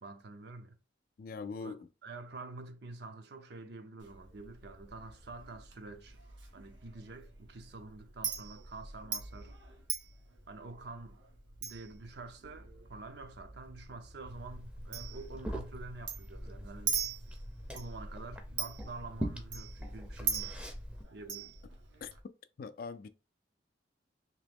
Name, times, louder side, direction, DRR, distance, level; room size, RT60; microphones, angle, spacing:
voice 1, 0.0-0.8 1.5-1.7 2.0-6.2 6.5-9.5 10.5-11.2 11.6-17.0 17.7-20.6 21.1-21.6, right 3 dB, 60° right, 0.6 m, -47 dB
voice 2, 1.2-1.9 22.0-22.1 22.6-23.1, left 4 dB, 50° left, 0.3 m, -41 dB
Chink clink, 4.0-22.2, right 6 dB, 85° right, 0.8 m, -43 dB
Liquid, 14.3-21.0, equal, 5° right, 0.5 m, -43 dB
3.0 x 2.9 x 3.4 m
head